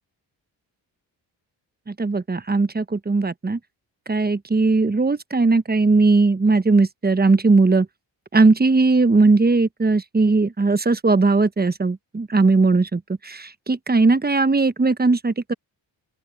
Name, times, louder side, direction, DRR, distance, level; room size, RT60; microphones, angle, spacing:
voice 1, 1.9-3.6 4.1-7.9 8.3-15.5, right 3 dB, 20° right, 1.0 m, -18 dB
open air
cardioid pair, 50°, 45 cm